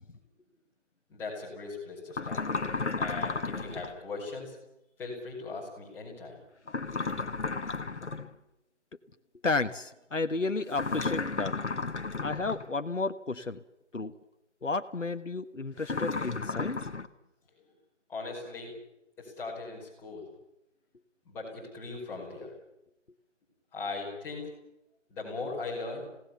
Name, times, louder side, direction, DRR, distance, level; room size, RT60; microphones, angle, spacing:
voice 1, 1.1-2.4 3.0-4.6 5.0-6.4 17.6-17.7 18.1-18.7 19.2-20.2 21.2-22.5 23.7-24.5 25.1-26.0, left 3 dB, 5° left, -6 dB, 5.0 m, -39 dB
sound 1, 2.1-3.9 6.7-8.3 10.7-12.7 15.8-17.1, left 4 dB, 65° left, 1.7 m, -33 dB
voice 2, 9.4-11.5 12.2-13.6 13.9-14.1 14.6-16.8, left 3 dB, 85° left, 8 dB, 1.4 m, -32 dB
28.0 x 18.0 x 7.1 m, 0.87 s
figure-of-eight pair, 160°, 37 cm